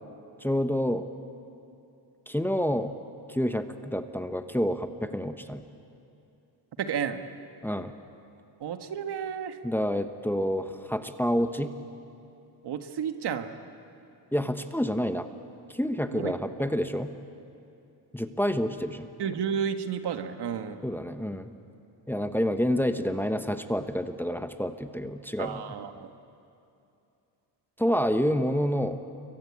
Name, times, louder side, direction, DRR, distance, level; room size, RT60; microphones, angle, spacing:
voice 1, 0.4-1.0 2.3-2.9 3.3-5.6 7.6-7.9 9.6-11.7 14.3-15.3 15.7-17.1 18.1-19.1 20.8-21.5 22.1-25.6 27.8-29.0, equal, 5° left, 8 dB, 1.2 m, -28 dB
voice 2, 6.8-7.2 8.6-9.6 12.6-13.5 16.1-16.7 19.2-20.9 25.4-26.1, right 7 dB, 60° right, 7 dB, 1.8 m, -32 dB
29.0 x 23.0 x 8.6 m, 2.7 s
cardioid pair, 90°, 44 cm